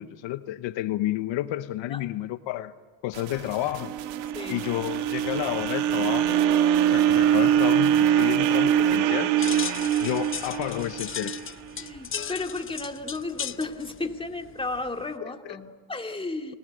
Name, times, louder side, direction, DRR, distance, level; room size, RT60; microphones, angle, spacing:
voice 1, 0.0-2.7 3.0-4.0 4.5-6.6 6.9-9.3 10.0-11.3, left 15 dB, 70° left, 11 dB, 1.1 m, -31 dB
sound 1, 3.1-9.0, right 11 dB, 70° right, 1.9 m, -42 dB
sound 2, 3.7-11.9, right 10 dB, 90° right, 1.8 m, -23 dB
voice 2, 4.3-4.7 11.8-16.6, left 3 dB, 10° left, 3 dB, 2.4 m, -33 dB
sound 3, 9.4-15.1, left 8 dB, 30° left, 0.7 m, -37 dB
28.5 x 19.0 x 9.3 m, 1.5 s
supercardioid pair, 90°, 46 cm